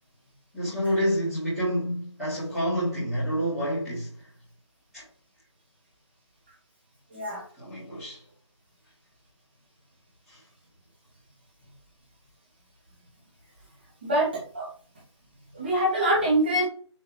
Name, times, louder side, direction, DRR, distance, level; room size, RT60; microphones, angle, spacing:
voice 1, 0.5-4.2 4.9-5.0 7.6-8.2 10.3-10.4, equal, ahead, 2.2 m, -28 dB
voice 2, 7.1-7.4 14.0-14.7 15.5-16.7, right 1 dB, 20° right, 2.3 m, -24 dB
8.2 x 4.5 x 3.1 m
figure-of-eight pair, 175°, 15 cm